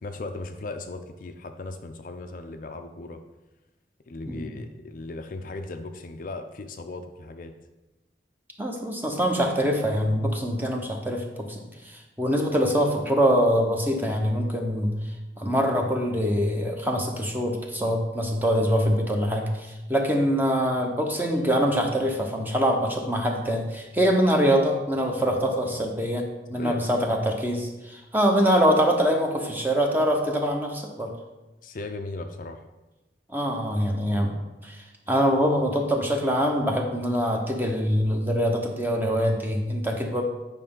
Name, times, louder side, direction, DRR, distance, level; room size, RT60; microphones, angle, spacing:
voice 1, 0.0-3.2 4.1-7.5 25.6-25.9 26.5-26.9 31.6-32.6, left 2 dB, 45° left, 6 dB, 0.5 m, -37 dB
voice 2, 4.3-4.6 8.6-14.9 15.4-26.2 26.5-31.1 33.3-34.3 34.6-40.2, equal, 10° right, 2 dB, 0.9 m, -24 dB
9.1 x 5.2 x 3.8 m, 1.1 s
head